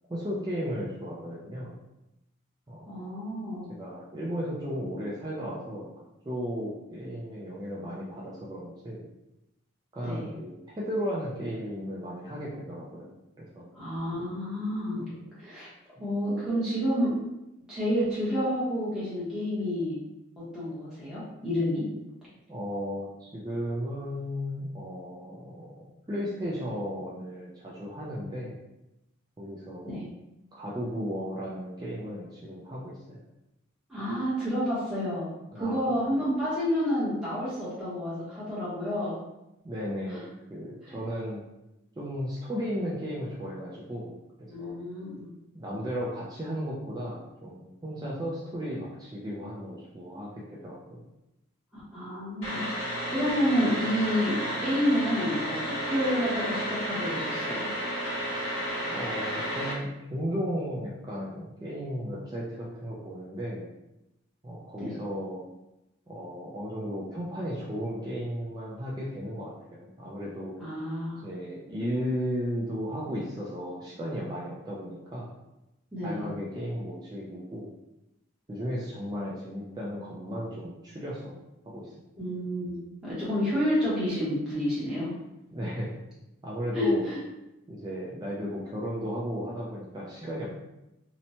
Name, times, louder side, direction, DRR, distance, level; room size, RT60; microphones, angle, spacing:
voice 1, 0.1-1.8 2.7-2.9 3.7-5.9 6.2-9.1 9.9-13.7 15.1-15.3 22.5-25.7 26.1-28.6 29.4-30.0 30.5-33.2 35.5-36.0 39.6-41.4 42.0-44.1 44.4-44.8 45.5-51.0 58.9-63.7 64.4-65.4 66.1-70.5 71.2-75.3 76.0-77.7 78.5-81.4 81.6-81.9 85.5-85.9 86.4-87.1 87.7-90.6, equal, 20° right, -6 dB, 0.3 m, -35 dB
voice 2, 2.9-3.7 10.0-10.3 13.7-15.1 15.4-15.7 16.0-17.2 17.7-20.0 20.4-21.9 29.8-30.1 33.9-39.2 40.1-40.2 40.8-41.0 44.5-45.3 51.7-52.7 53.1-57.7 64.8-64.9 70.6-71.2 75.9-76.2 82.1-85.1 86.7-87.2, equal, 5° right, -11 dB, 0.8 m, -29 dB
sound 1, 52.4-59.7, equal, 80° left, 1.0 m, -32 dB
2.8 x 2.1 x 2.7 m, 0.91 s
head